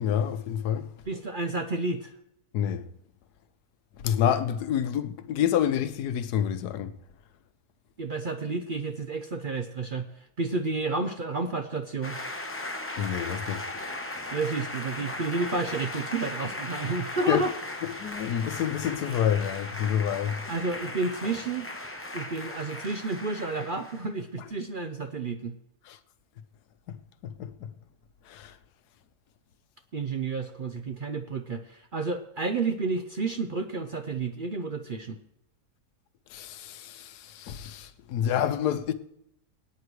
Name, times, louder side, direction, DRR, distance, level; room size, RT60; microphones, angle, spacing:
voice 1, 0.0-0.9 2.5-2.9 4.0-7.0 13.0-13.7 17.3-17.5 17.8-20.4 25.9-26.0 26.9-27.0 27.2-27.7 28.3-28.6 36.3-38.9, left 9 dB, 85° left, 1.3 m, -28 dB
voice 2, 1.1-2.1 8.0-10.1 10.4-12.2 14.3-17.5 20.5-21.7 22.1-25.5 29.9-35.2, right 3 dB, 50° right, 0.6 m, -31 dB
sound 1, 12.0-24.1, left 2 dB, 10° left, 0.6 m, -37 dB
23.0 x 9.3 x 3.2 m
omnidirectional pair, 1.6 m